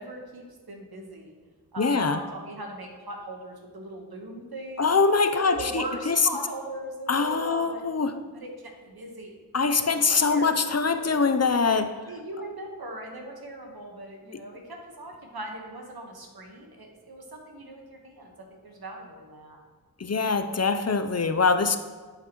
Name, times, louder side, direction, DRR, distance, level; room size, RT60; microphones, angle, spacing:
voice 1, 0.0-1.4 1.7-4.9 5.3-7.8 8.3-8.5 8.8-9.3 9.6-10.6 10.9-11.2 12.1-19.6, right 1 dB, 85° right, 1 dB, 1.3 m, -39 dB
voice 2, 1.8-2.2 4.8-6.2 7.1-8.1 9.5-11.9 20.0-21.8, left 4 dB, 45° left, 9 dB, 0.5 m, -23 dB
11.5 x 5.8 x 3.0 m, 1.4 s
wide cardioid pair, 50°, 36 cm